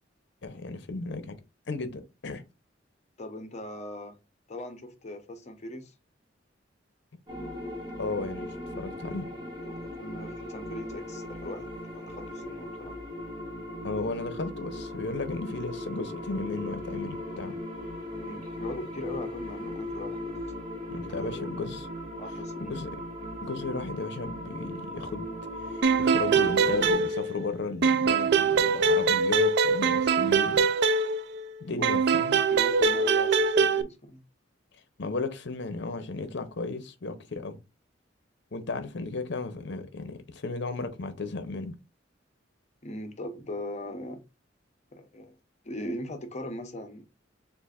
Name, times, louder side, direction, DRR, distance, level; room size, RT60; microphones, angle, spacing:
voice 1, 0.4-1.4 1.7-2.4 8.0-9.3 13.8-17.6 20.9-21.9 22.6-23.0 23.4-25.3 25.7-30.7 31.6-32.4 35.0-37.6 38.5-41.8, left 3 dB, 65° left, 0.7 m, -34 dB
voice 2, 3.2-4.2 4.5-5.9 9.7-13.0 18.2-20.4 21.1-21.5 22.2-22.8 31.6-32.0 32.5-34.2 42.8-44.2 44.9-45.4 45.6-47.0, left 1 dB, 40° left, 0.8 m, -39 dB
sound 1, 7.3-26.9, left 1 dB, 25° right, 1.2 m, -38 dB
sound 2, 25.8-27.5 27.8-31.4 31.8-33.8, right 4 dB, 65° right, 0.4 m, -23 dB
6.8 x 2.5 x 2.4 m
head